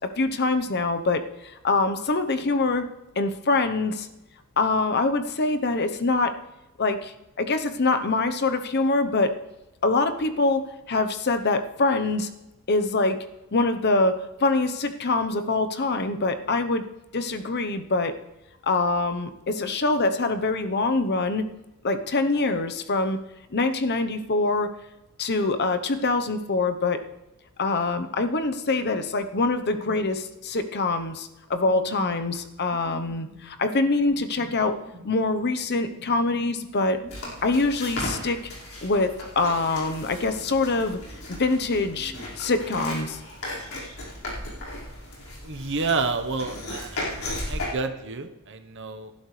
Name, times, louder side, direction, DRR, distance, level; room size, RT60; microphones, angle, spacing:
voice 1, 0.2-2.9 3.2-4.1 4.6-6.3 6.8-9.3 9.8-10.6 10.9-12.3 12.7-13.2 13.5-16.8 17.1-18.1 18.7-21.4 21.8-23.2 23.5-24.7 25.2-27.0 27.6-34.7 35.0-37.0 37.4-38.4 38.8-41.0 41.3-43.2, left 3 dB, 50° left, 8 dB, 0.9 m, -24 dB
sound 1, 29.7-30.1 30.4-30.5 31.6-33.5 34.0-35.1 35.7-39.0 39.3-43.0, right 1 dB, 25° right, 3.4 m, -46 dB
sound 2, 37.1-47.7, left 1 dB, 65° left, 5.0 m, -36 dB
voice 2, 45.4-47.0 47.5-49.1, right 4 dB, 55° right, 8 dB, 1.0 m, -29 dB
18.5 x 11.5 x 3.3 m, 0.97 s
head